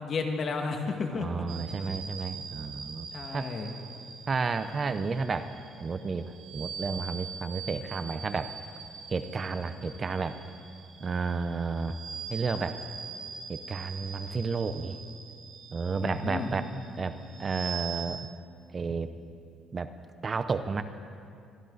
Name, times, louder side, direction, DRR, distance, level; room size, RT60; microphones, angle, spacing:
voice 1, 0.0-1.3 3.1-3.7 16.0-16.5, left 4 dB, 45° left, 3 dB, 2.1 m, -32 dB
voice 2, 1.1-3.1 3.3-3.5 4.3-5.5 5.8-8.5 9.1-10.4 11.0-12.0 12.3-12.8 13.5-15.0 15.7-16.7 17.0-18.3 18.7-19.1 19.7-19.9 20.2-20.8, right 4 dB, 35° right, 11 dB, 0.7 m, -31 dB
sound 1, 1.5-18.1, right 6 dB, 55° right, 1.8 m, -43 dB
23.5 x 14.5 x 4.1 m, 2.4 s
cardioid pair, 100°, 0 cm